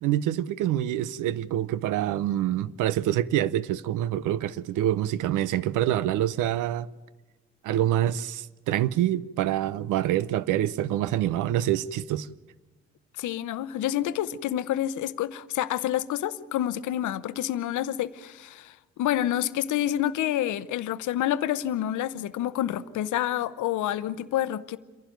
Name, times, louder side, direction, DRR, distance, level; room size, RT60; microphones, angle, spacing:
voice 1, 0.0-6.9 7.6-12.3, right 12 dB, 85° right, 0.7 m, -26 dB
voice 2, 13.2-24.8, left 12 dB, 80° left, 0.8 m, -28 dB
28.0 x 11.5 x 9.2 m
cardioid pair, 90°, 30 cm